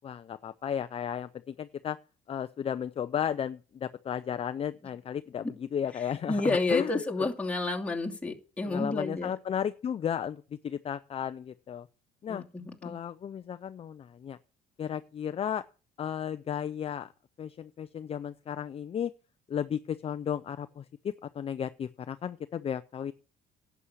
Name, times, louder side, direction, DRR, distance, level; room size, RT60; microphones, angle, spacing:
voice 1, 0.0-2.0 2.3-7.0 8.6-11.9 12.2-12.4 12.8-14.4 14.8-15.6 16.0-17.1 17.4-19.1 19.5-23.1, left 8 dB, 35° left, 11 dB, 0.5 m, -34 dB
voice 2, 6.3-9.3 12.3-13.0, left 3 dB, 5° left, -1 dB, 2.6 m, -30 dB
11.5 x 8.3 x 6.4 m, 0.36 s
cardioid pair, 110°, 17 cm